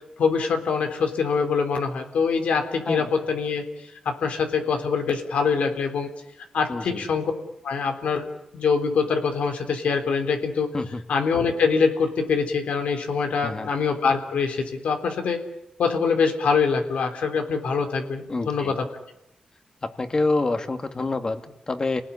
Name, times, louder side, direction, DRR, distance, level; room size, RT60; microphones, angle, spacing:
voice 1, 0.2-3.6 4.1-6.1 6.5-7.3 7.6-8.3 8.5-10.7 11.1-15.4 15.8-18.9, left 5 dB, 90° left, 5 dB, 3.7 m, -24 dB
voice 2, 6.7-7.1 10.7-11.0 13.4-13.7 18.3-18.8 19.8-22.0, left 3 dB, 35° left, 8 dB, 2.3 m, -27 dB
29.5 x 19.0 x 9.9 m, 0.84 s
cardioid pair, 85°, 2 cm